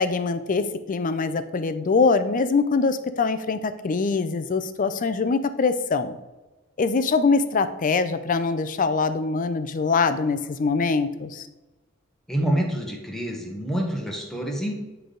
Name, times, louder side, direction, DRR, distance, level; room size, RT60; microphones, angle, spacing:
voice 1, 0.0-6.2 6.8-11.5, left 4 dB, 40° left, 11 dB, 0.5 m, -23 dB
voice 2, 12.3-14.7, right 1 dB, ahead, 0 dB, 1.1 m, -27 dB
9.9 x 3.4 x 3.8 m, 1.1 s
head